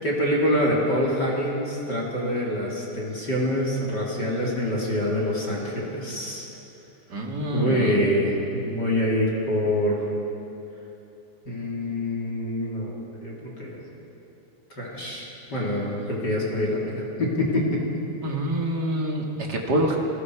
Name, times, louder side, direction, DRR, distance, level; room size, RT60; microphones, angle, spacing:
voice 1, 0.0-6.5 7.5-10.0 11.5-12.9 13.2-13.8 14.8-17.8, left 1 dB, 25° left, -4 dB, 3.8 m, -25 dB
voice 2, 7.1-7.9 18.2-20.0, right 1 dB, 35° right, 0 dB, 2.1 m, -26 dB
29.5 x 20.0 x 5.0 m, 2.8 s
omnidirectional pair, 4.5 m